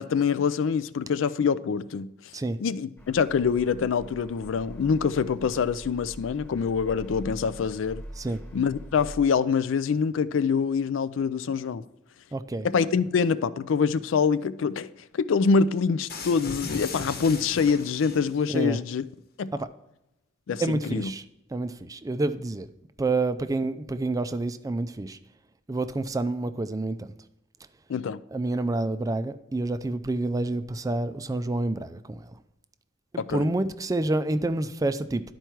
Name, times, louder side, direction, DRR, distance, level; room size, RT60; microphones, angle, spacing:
voice 1, 0.0-2.1 2.6-8.0 8.5-11.8 12.6-19.0 19.4-19.5 20.5-21.1 27.9-28.2 33.2-33.5, left 5 dB, 70° left, 0.4 m, -25 dB
sound 1, 3.0-9.3, right 1 dB, 15° left, 1.3 m, -44 dB
voice 2, 12.3-12.7 18.5-18.8 19.5-19.7 20.6-21.2 21.5-22.7 23.0-25.2 25.7-27.1 28.3-32.4 33.3-35.2, right 2 dB, 20° right, 0.4 m, -28 dB
sound 2, 16.1-18.5, left 3 dB, 55° left, 1.1 m, -37 dB
11.5 x 4.5 x 4.6 m
head